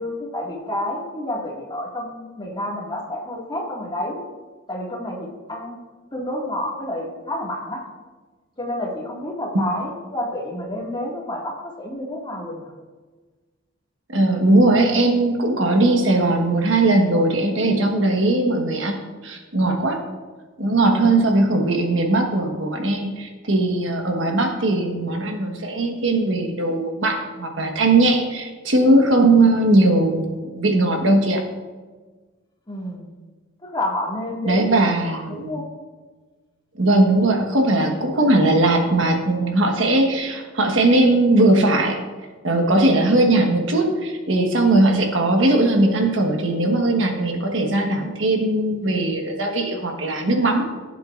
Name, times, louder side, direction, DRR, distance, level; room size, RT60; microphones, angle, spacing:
voice 1, 0.0-4.2 4.7-5.8 6.1-7.8 8.6-12.7 17.6-17.9 20.9-21.2 32.7-33.1 33.6-35.6 37.9-38.0, left 1 dB, 25° left, -2 dB, 2.0 m, -29 dB
voice 2, 14.1-19.0 19.2-20.0 20.6-31.4 34.4-35.5 36.8-42.0 42.4-50.7, right 2 dB, 65° right, 2 dB, 1.3 m, -19 dB
16.5 x 7.6 x 2.5 m, 1.3 s
head